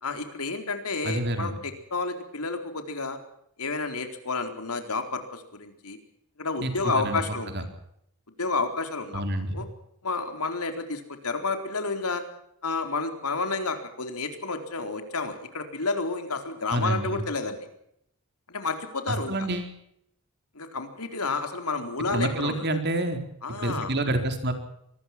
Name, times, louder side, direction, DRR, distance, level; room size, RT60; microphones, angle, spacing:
voice 1, 0.0-3.2 3.6-6.0 6.4-7.5 8.4-9.2 9.5-9.7 10.0-12.2 12.6-17.6 18.5-19.3 20.5-22.6 23.4-23.9, left 3 dB, 85° left, 6 dB, 4.3 m, -30 dB
voice 2, 1.0-1.5 6.6-6.7 7.0-7.2 7.5-7.6 9.1-9.5 16.7-17.2 19.1-19.7 22.1-23.2 23.6-24.5, right 1 dB, 50° right, 7 dB, 4.2 m, -28 dB
25.5 x 20.0 x 6.1 m, 0.75 s
head